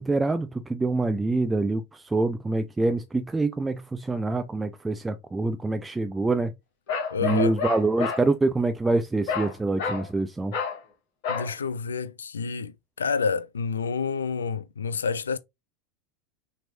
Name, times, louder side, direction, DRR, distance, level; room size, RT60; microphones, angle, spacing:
voice 1, 0.0-6.5 7.2-10.5, right 2 dB, 10° right, 0.5 m, -25 dB
Bark, 6.9-8.3 9.3-9.5 9.8-10.1 10.5-10.8 11.2-11.5, left 6 dB, 55° left, 2.2 m, -29 dB
voice 2, 7.1-7.6 11.3-15.4, left 5 dB, 75° left, 0.3 m, -28 dB
5.9 x 3.3 x 2.6 m
figure-of-eight pair, 80°, 0 cm